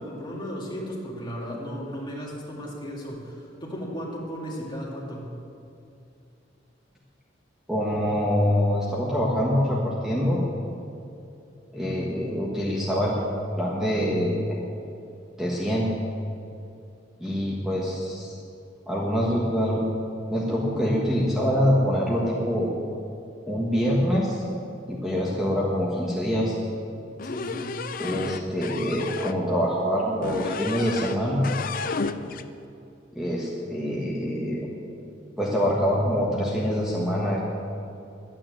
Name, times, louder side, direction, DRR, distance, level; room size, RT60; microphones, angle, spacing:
voice 1, 0.0-3.3 3.6-5.3 27.2-27.8, equal, 25° left, -3 dB, 2.6 m, -35 dB
voice 2, 7.7-10.4 11.7-13.3 13.6-14.4 15.4-15.9 17.2-18.3 18.9-19.8 20.3-22.7 23.5-24.4 24.9-26.5 28.0-31.5 33.1-34.7 35.4-37.4, equal, ahead, -5 dB, 1.5 m, -25 dB
sound 1, 27.2-29.4 30.2-31.2 31.4-32.5, left 5 dB, 50° left, 0.5 m, -32 dB
11.5 x 9.2 x 7.8 m, 2.7 s
head